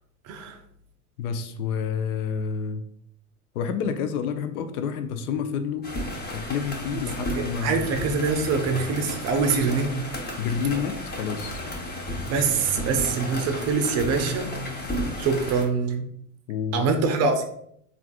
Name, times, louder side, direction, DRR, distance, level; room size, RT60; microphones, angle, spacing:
voice 1, 0.2-0.6 6.9-10.1 12.3-14.6 15.2-16.1 16.7-17.4, right 4 dB, 40° right, 6 dB, 0.5 m, -24 dB
voice 2, 1.2-2.8 3.5-5.9 6.3-7.9 10.4-11.6 16.5-16.8, left 7 dB, 75° left, 8 dB, 0.5 m, -29 dB
sound 1, 5.8-15.6, left 1 dB, 20° left, 0.8 m, -33 dB
3.3 x 2.4 x 2.3 m, 0.70 s
hypercardioid pair, 85°, 44 cm